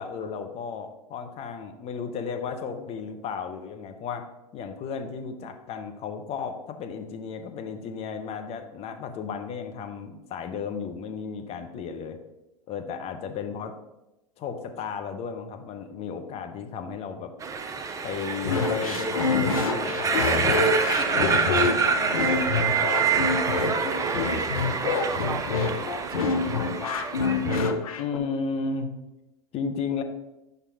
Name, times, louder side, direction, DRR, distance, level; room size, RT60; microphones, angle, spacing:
voice 1, 0.0-4.2 4.5-12.2 12.7-13.7 14.4-17.3 18.0-22.4 28.0-28.9 29.5-30.0, left 5 dB, 35° left, 6 dB, 0.8 m, -34 dB
sound 1, 17.4-27.7, right 5 dB, 15° right, 0.6 m, -27 dB
sound 2, 18.4-28.2, left 4 dB, 70° left, 0.7 m, -26 dB
voice 2, 24.8-26.5, right 8 dB, 80° right, 13 dB, 0.4 m, -41 dB
5.0 x 4.6 x 4.8 m, 0.95 s
hypercardioid pair, 95°, 19 cm